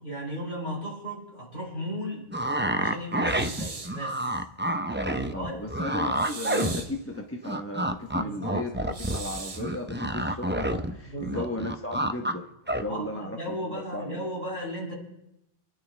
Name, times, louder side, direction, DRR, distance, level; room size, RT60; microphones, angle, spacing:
voice 1, 0.0-2.3 2.7-4.3 5.3-5.6 8.2-8.6 11.0-11.5 12.9-14.9, equal, 40° left, -4 dB, 6.4 m, -35 dB
sound 1, 2.3-7.2 7.5-10.9 11.2-12.3 12.7-12.8, right 1 dB, 10° right, 0.6 m, -28 dB
sound 2, 3.3-4.0 6.1-7.0 8.9-9.7, right 4 dB, 35° right, 0.9 m, -38 dB
voice 2, 4.9-12.5 12.8-14.3, left 1 dB, 10° left, 1 dB, 1.1 m, -35 dB
27.5 x 11.0 x 3.4 m, 0.84 s
omnidirectional pair, 1.2 m